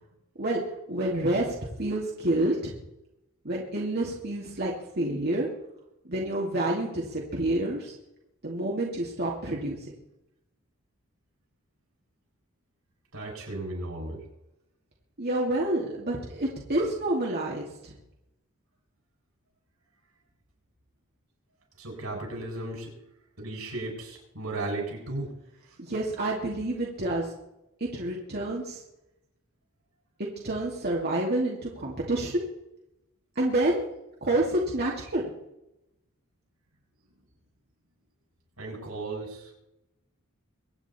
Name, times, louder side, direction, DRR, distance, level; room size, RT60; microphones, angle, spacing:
voice 1, 0.9-2.7 3.4-5.5 6.1-7.9 8.4-9.8 15.2-17.9 25.8-27.3 27.9-28.8 30.2-32.4 33.4-33.8 34.2-35.2, right 1 dB, 50° right, -3 dB, 2.5 m, -28 dB
voice 2, 13.1-14.2 21.8-22.9 23.4-25.3 38.6-39.5, right 2 dB, 85° right, 0 dB, 7.0 m, -35 dB
24.5 x 9.2 x 4.4 m, 0.88 s
head